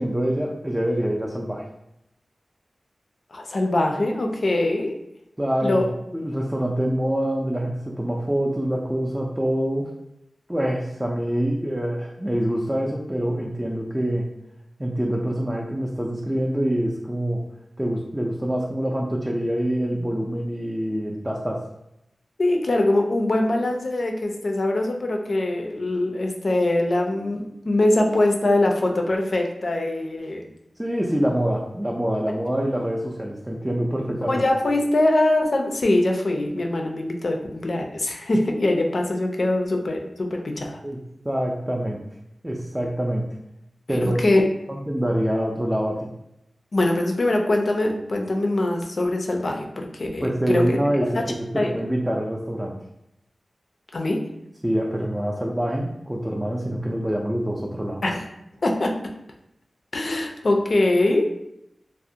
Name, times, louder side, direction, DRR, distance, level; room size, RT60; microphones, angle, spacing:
voice 1, 0.0-1.7 5.4-9.9 10.5-14.3 14.8-17.4 17.8-21.7 30.8-34.4 40.8-42.0 42.4-43.3 43.9-44.2 44.7-46.1 50.2-52.8 54.6-58.0, equal, 15° right, -2 dB, 0.3 m, -25 dB
voice 2, 3.3-4.9 5.6-5.9 22.4-30.4 34.3-40.8 43.9-44.5 46.7-50.8 51.1-51.2 51.6-51.7 53.9-54.2 58.0-58.3 58.6-59.0 59.9-61.2, left 1 dB, 65° left, 2 dB, 0.4 m, -22 dB
2.4 x 2.0 x 2.7 m, 0.82 s
wide cardioid pair, 55°, 0 cm